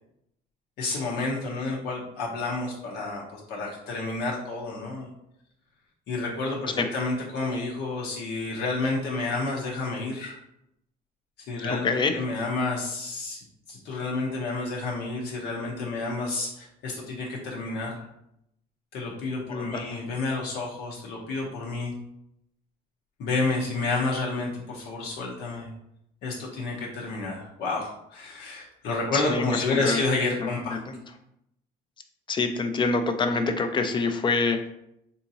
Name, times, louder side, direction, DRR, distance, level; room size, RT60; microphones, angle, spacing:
voice 1, 0.8-5.1 6.1-10.4 11.5-13.4 13.7-18.1 18.9-21.9 23.2-25.7 26.2-30.8, left 3 dB, 80° left, -3 dB, 0.8 m, -30 dB
voice 2, 11.7-12.1 19.5-20.0 29.1-29.6 29.8-30.0 30.4-31.0 32.3-34.7, left 4 dB, 30° left, 7 dB, 0.4 m, -26 dB
3.6 x 2.7 x 2.7 m, 0.78 s
cardioid pair, 110°, 17 cm